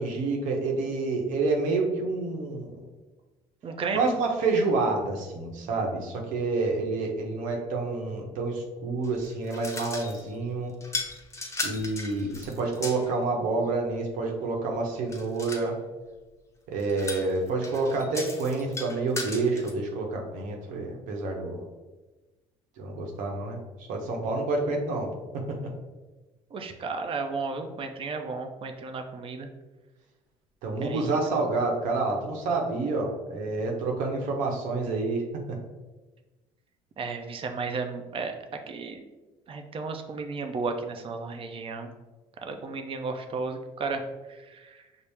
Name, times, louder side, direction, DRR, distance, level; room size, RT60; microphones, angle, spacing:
voice 1, 0.0-2.8 3.9-10.7 11.6-15.7 16.7-21.6 22.8-25.1 30.6-35.2 35.5-35.6, right 3 dB, 70° right, 1 dB, 0.8 m, -28 dB
voice 2, 3.6-4.1 26.5-29.5 30.8-31.2 37.0-38.4 38.7-39.0 39.5-41.9 42.4-44.0 44.3-44.8, right 4 dB, 40° right, 5 dB, 0.6 m, -33 dB
sound 1, 9.0-10.3 10.8-13.1 15.1-15.7 16.8-19.7, left 3 dB, 20° left, 0.7 m, -37 dB
5.4 x 2.0 x 3.3 m, 1.2 s
supercardioid pair, 75°, 14 cm